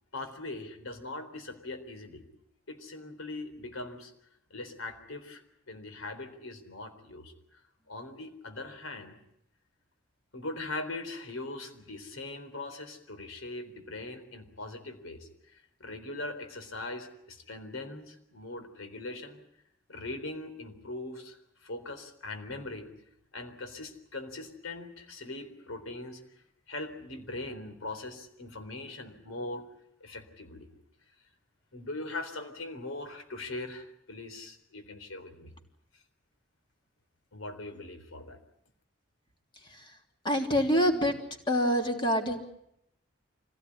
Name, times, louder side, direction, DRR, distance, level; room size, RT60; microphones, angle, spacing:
voice 1, 0.1-2.2 2.7-4.1 4.5-5.4 5.7-7.3 7.9-9.2 10.3-19.4 19.9-22.9 23.3-26.2 26.7-29.6 30.0-30.7 31.7-35.5 37.3-38.4, left 2 dB, 90° left, 7 dB, 3.9 m, -41 dB
voice 2, 40.2-41.2 41.5-42.4, equal, 25° left, 3 dB, 3.2 m, -25 dB
25.5 x 17.0 x 9.9 m, 0.78 s
head